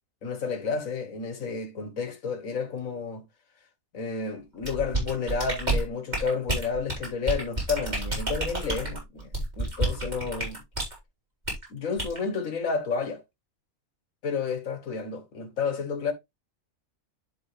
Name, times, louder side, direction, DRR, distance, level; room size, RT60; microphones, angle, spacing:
voice 1, 0.2-3.2 3.9-10.6 11.7-13.2 14.2-16.1, left 5 dB, 70° left, 1.8 m, -31 dB
sound 1, 4.6-11.0 11.5-11.6 12.0-12.2, right 2 dB, 30° right, 3.8 m, -29 dB
11.0 x 3.8 x 3.2 m
omnidirectional pair, 1.5 m